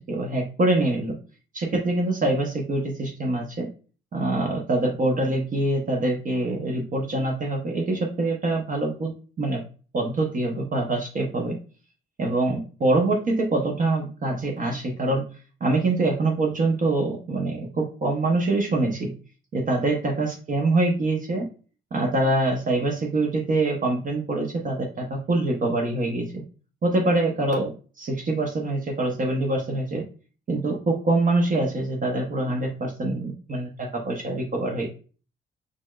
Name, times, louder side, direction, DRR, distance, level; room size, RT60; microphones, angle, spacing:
voice 1, 0.1-1.2 1.5-3.7 4.1-9.6 9.9-11.6 12.2-15.2 15.6-19.1 19.5-21.4 21.9-26.4 26.8-30.0 30.5-34.9, right 2 dB, 40° right, 1 dB, 0.7 m, -24 dB
4.2 x 3.1 x 2.3 m, 0.38 s
cardioid pair, 90°, 20 cm